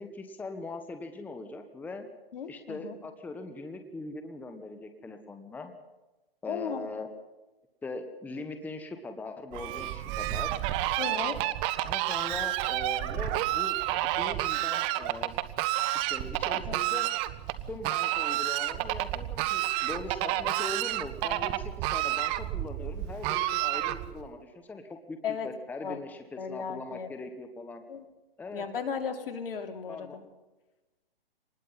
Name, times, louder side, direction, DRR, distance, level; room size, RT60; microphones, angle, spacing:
voice 1, 0.0-2.1 2.5-5.7 6.4-7.1 7.8-10.5 11.0-11.5 11.8-13.8 14.2-15.3 15.9-17.1 17.7-27.8 28.4-28.6 29.9-30.2, left 3 dB, 5° left, 7 dB, 1.1 m, -41 dB
voice 2, 2.3-3.0 6.4-6.9 11.0-11.4 16.5-16.8 25.2-25.5 25.8-26.0 26.4-27.1 27.9-28.0 28.5-30.2, left 6 dB, 70° left, 6 dB, 3.0 m, -35 dB
Fowl, 9.5-24.3, right 15 dB, 20° right, 0.6 m, -30 dB
25.0 x 19.5 x 5.7 m, 1.1 s
hypercardioid pair, 140°, 30 cm